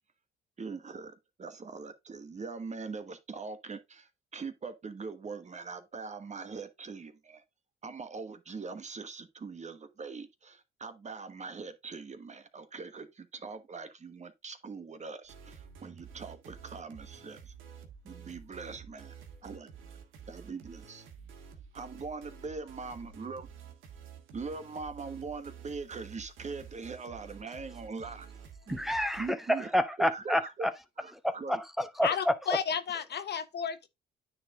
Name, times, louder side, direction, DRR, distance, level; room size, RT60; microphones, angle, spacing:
voice 1, 0.6-7.4 7.8-17.5 18.0-19.1 19.4-19.7 20.3-21.1 21.7-23.5 24.3-28.3 28.7-28.8 29.2-29.7 30.1-30.5 31.0-31.6, right 4 dB, 35° right, 1.3 m, -42 dB
sound 1, 15.2-29.3, right 7 dB, 85° right, 1.7 m, -50 dB
voice 2, 28.7-30.7 31.2-32.6, equal, ahead, 0.9 m, -29 dB
voice 3, 32.0-33.9, left 7 dB, 60° left, 1.2 m, -32 dB
9.5 x 4.4 x 3.7 m
cardioid pair, 90°, 20 cm